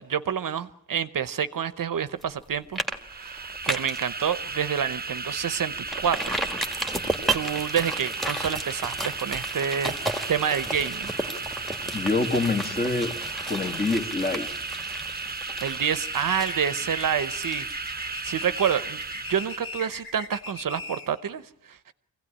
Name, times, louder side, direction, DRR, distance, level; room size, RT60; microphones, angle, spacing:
voice 1, 0.0-6.4 7.3-11.2 15.6-17.7 17.9-19.0 19.3-21.9, right 8 dB, 60° right, 0.9 m, -28 dB
sound 1, 2.2-2.4 2.8-3.0 3.3-4.0 4.5-4.6 5.0-5.1 5.9-19.4 19.8-19.9, right 1 dB, ahead, 1.6 m, -33 dB
sound 2, 2.9-19.8, right 4 dB, 25° right, 0.9 m, -35 dB
voice 2, 11.9-13.1 13.5-14.5, left 3 dB, 25° left, 1.9 m, -25 dB
sound 3, 15.9-21.2, left 3 dB, 65° left, 2.5 m, -39 dB
25.0 x 17.0 x 10.0 m
wide cardioid pair, 170°, 37 cm